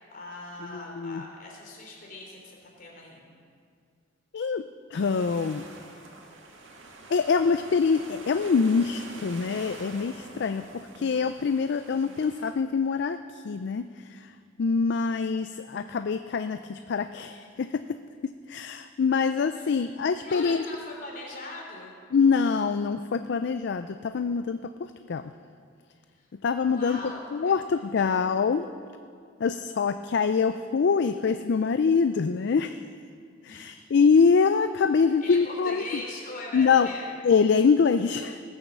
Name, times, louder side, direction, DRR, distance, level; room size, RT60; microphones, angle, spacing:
voice 1, 0.0-3.2 19.5-21.9 26.1-26.3 26.6-27.5 33.5-33.9 35.2-37.1, left 2 dB, 45° left, -2 dB, 3.2 m, -41 dB
voice 2, 0.7-1.2 4.3-4.6 4.9-5.6 7.1-10.6 11.0-13.8 14.1-14.2 14.6-17.7 18.5-20.6 22.1-24.6 25.1-25.2 26.4-27.0 27.3-28.7 29.4-32.8 33.4-35.8 36.5-36.9 37.2-38.4, left 5 dB, 60° left, 10 dB, 0.4 m, -24 dB
sound 1, 4.9-12.5, right 2 dB, 85° right, 1.8 m, -46 dB
19.0 x 7.1 x 7.3 m, 2.2 s
head